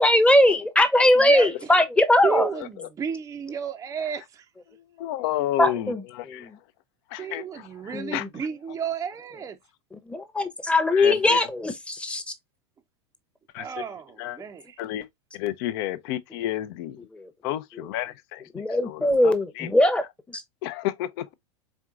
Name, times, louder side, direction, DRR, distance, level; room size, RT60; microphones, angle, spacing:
voice 1, 0.0-2.5 5.6-6.0 7.9-8.1 10.1-12.2 18.5-20.0, left 1 dB, 5° left, 0.8 m, -20 dB
voice 2, 1.2-1.7 2.2-4.4 7.2-9.6 13.6-14.8, right 7 dB, 20° right, 0.5 m, -32 dB
voice 3, 2.5-2.9 5.0-6.5 7.1-8.5 10.9-11.5 13.5-13.8 14.2-14.4 14.8-15.1 15.3-17.0 17.4-19.7 20.6-21.3, left 13 dB, 55° left, 0.6 m, -31 dB
4.4 x 3.7 x 2.4 m
hypercardioid pair, 95°, 15 cm